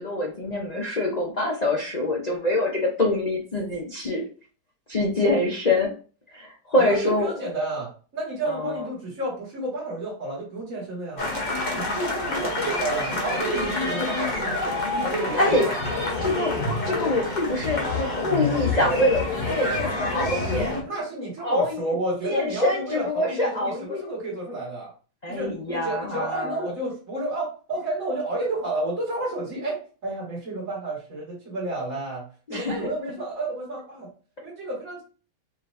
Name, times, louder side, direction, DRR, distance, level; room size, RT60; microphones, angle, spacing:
voice 1, 0.0-4.2 4.9-5.9 6.3-7.3 8.5-8.9 15.4-15.7 16.2-16.6 16.8-20.8 21.4-21.8 22.2-24.1 25.2-26.7 32.5-32.8, left 1 dB, 90° left, -2 dB, 0.3 m, -25 dB
voice 2, 6.8-11.2 11.7-14.6 14.9-15.8 20.8-24.9 25.3-32.2 32.5-34.1 34.4-35.0, right 2 dB, 50° right, -6 dB, 1.9 m, -31 dB
sound 1, 11.2-20.8, left 2 dB, 35° left, 0.7 m, -27 dB
5.1 x 3.1 x 2.5 m, 0.38 s
omnidirectional pair, 1.9 m